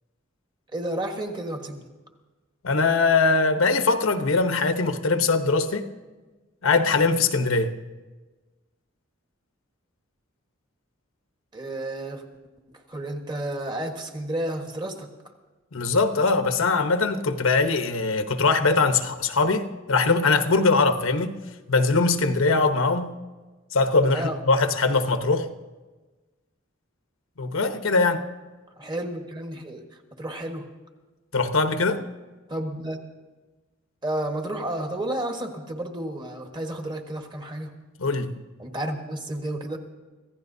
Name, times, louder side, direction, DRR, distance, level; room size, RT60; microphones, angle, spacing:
voice 1, 0.7-1.8 11.5-12.2 12.9-15.1 24.1-24.4 28.8-29.8 30.2-30.7 32.5-33.0 34.0-37.7 38.6-39.8, right 1 dB, 20° right, 4 dB, 1.4 m, -31 dB
voice 2, 2.6-5.9 6.6-7.7 15.7-21.4 21.7-23.1 23.7-25.5 27.4-28.2 31.3-32.0 38.0-38.3, left 3 dB, 80° left, 7 dB, 1.0 m, -22 dB
26.0 x 15.5 x 2.7 m, 1.2 s
head